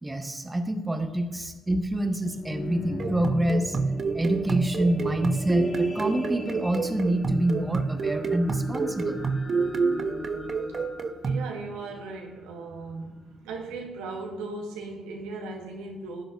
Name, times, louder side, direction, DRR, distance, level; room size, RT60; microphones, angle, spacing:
voice 1, 0.0-3.8 4.1-9.2, right 1 dB, 15° right, 1.2 m, -27 dB
sound 1, 2.1-12.6 13.2-13.3, left 2 dB, 30° left, 2.5 m, -39 dB
sound 2, 3.0-11.5, right 5 dB, 45° right, 0.6 m, -29 dB
voice 2, 11.2-16.2, right 3 dB, 75° right, 1.2 m, -37 dB
15.0 x 7.5 x 2.6 m
hypercardioid pair, 45°, 0 cm